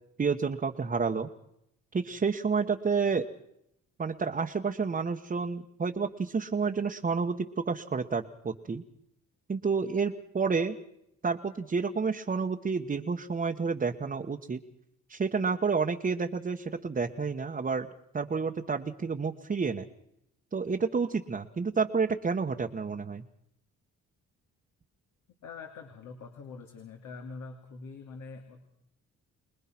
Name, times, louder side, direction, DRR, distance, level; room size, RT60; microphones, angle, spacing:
voice 1, 0.2-1.3 1.9-3.3 4.0-8.8 9.5-10.8 11.2-14.6 15.1-17.9 18.1-19.8 20.5-23.2, right 5 dB, 30° right, 2 dB, 1.3 m, -30 dB
voice 2, 25.4-28.6, left 4 dB, 75° left, 3 dB, 2.8 m, -44 dB
25.0 x 20.5 x 6.1 m, 0.78 s
cardioid pair, 90°, 30 cm